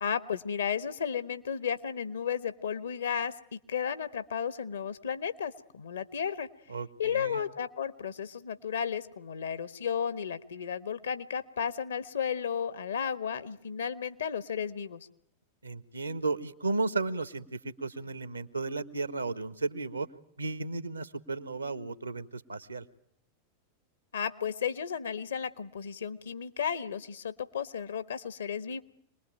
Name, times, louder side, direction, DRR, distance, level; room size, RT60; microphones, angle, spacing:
voice 1, 0.0-6.5 7.0-15.1 24.1-28.8, left 7 dB, 70° left, 12 dB, 1.3 m, -33 dB
voice 2, 6.7-7.4 15.6-20.1 20.4-22.8, right 3 dB, 80° right, 13 dB, 1.2 m, -34 dB
26.5 x 20.5 x 9.0 m, 0.71 s
figure-of-eight pair, 90°, 0 cm